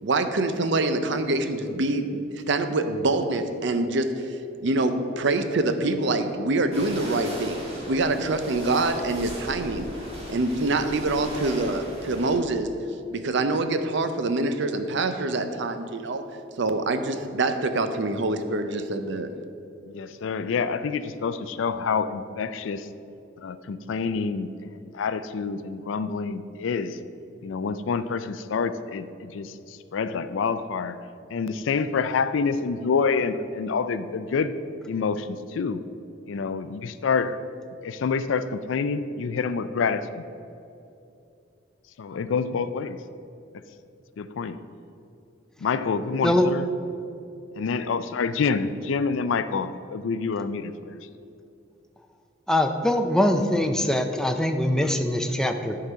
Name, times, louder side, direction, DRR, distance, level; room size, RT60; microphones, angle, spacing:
voice 1, 0.0-4.4 4.6-9.9 10.3-12.7 13.1-16.2 16.6-19.3, right 2 dB, 65° right, 8 dB, 0.6 m, -25 dB
sound 1, 6.7-12.4, equal, 35° right, 1.8 m, -37 dB
voice 2, 19.9-22.9 23.4-27.0 27.4-31.0 31.3-34.6 34.9-35.8 36.3-37.4 37.8-40.3 42.0-43.0 44.2-44.6 45.6-46.7 47.6-51.0, left 5 dB, 80° left, 13 dB, 0.4 m, -27 dB
voice 3, 52.5-55.8, left 1 dB, 5° left, 6 dB, 0.4 m, -23 dB
11.0 x 3.9 x 5.6 m, 2.7 s
head